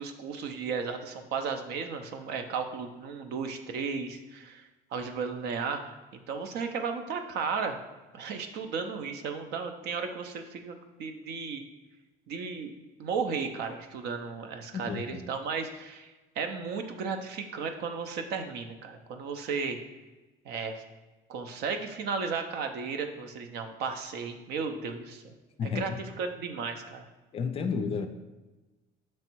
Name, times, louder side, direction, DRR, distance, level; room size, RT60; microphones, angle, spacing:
voice 1, 0.0-4.6 4.9-5.8 6.3-7.8 8.1-11.6 12.3-12.7 13.0-19.8 20.4-20.8 21.3-25.3 25.6-25.9 26.2-27.1, right 5 dB, 60° right, 6 dB, 0.7 m, -34 dB
voice 2, 14.9-15.2 25.6-26.0 27.3-28.1, left 5 dB, 30° left, 7 dB, 0.4 m, -31 dB
6.8 x 3.2 x 4.5 m, 1.2 s
cardioid pair, 165°, 19 cm